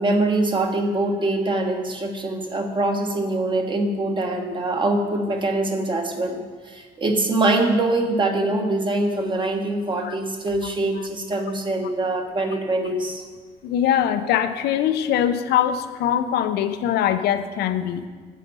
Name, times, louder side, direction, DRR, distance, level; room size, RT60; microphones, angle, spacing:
voice 1, 0.0-13.2, right 2 dB, 30° right, 3 dB, 1.3 m, -23 dB
voice 2, 13.6-18.1, left 10 dB, 75° left, 10 dB, 0.7 m, -22 dB
9.2 x 7.4 x 5.5 m, 1.5 s
cardioid pair, 110°, 17 cm